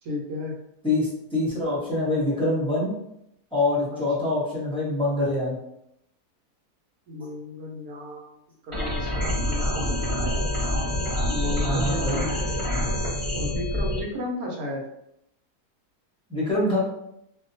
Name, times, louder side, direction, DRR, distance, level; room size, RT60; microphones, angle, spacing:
voice 1, 0.0-0.6 3.9-4.3 7.1-8.3 8.7-10.4 11.3-12.4 13.3-14.8, left 1 dB, 70° right, 0 dB, 1.0 m, -34 dB
voice 2, 0.8-2.9 3.5-5.5 11.6-12.3 16.3-16.8, left 2 dB, 5° left, -9 dB, 0.4 m, -25 dB
sound 1, 8.7-14.0, left 1 dB, 25° right, 0.7 m, -26 dB
2.7 x 2.1 x 2.6 m, 0.81 s
omnidirectional pair, 1.7 m